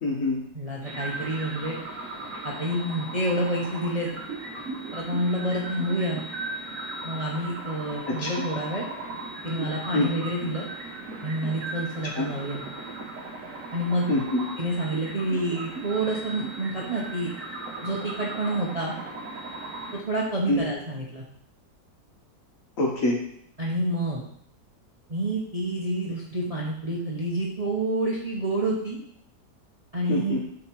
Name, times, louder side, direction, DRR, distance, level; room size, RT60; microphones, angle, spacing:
voice 1, 0.0-0.4 8.1-8.3 9.9-10.1 12.2-12.3 14.1-14.4 20.5-20.6 22.8-23.2 30.1-30.4, left 2 dB, 50° left, -1 dB, 1.7 m, -25 dB
voice 2, 0.5-1.8 2.4-4.1 4.9-6.2 7.0-8.9 9.4-10.7 11.2-12.6 13.7-14.1 14.6-17.3 17.8-18.9 19.9-21.2 23.6-24.2 25.1-29.0 29.9-30.4, right 1 dB, 30° right, -3 dB, 0.8 m, -28 dB
sound 1, 0.8-20.0, right 2 dB, 55° right, 1.3 m, -37 dB
7.2 x 3.9 x 4.7 m, 0.64 s
omnidirectional pair, 1.8 m